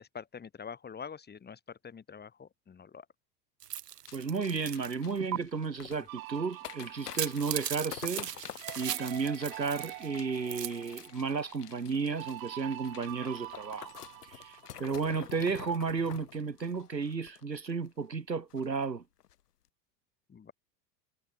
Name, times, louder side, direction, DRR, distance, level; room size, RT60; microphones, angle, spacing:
voice 1, 0.0-3.0 20.3-20.5, left 6 dB, 20° left, 3.4 m, -45 dB
sound 1, 3.6-4.9 5.3-5.4 7.0-10.1 10.4-11.1, right 10 dB, 70° right, 3.0 m, -38 dB
sound 2, 4.1-17.9 18.1-18.2 18.5-18.8 19.2-19.3, left 11 dB, 70° left, 3.9 m, -48 dB
voice 2, 4.1-8.5 8.8-13.9 14.3-19.0, right 5 dB, 85° right, 2.2 m, -33 dB
sound 3, 6.1-15.5, right 22 dB, 55° right, 3.2 m, -46 dB
figure-of-eight pair, 85°, 49 cm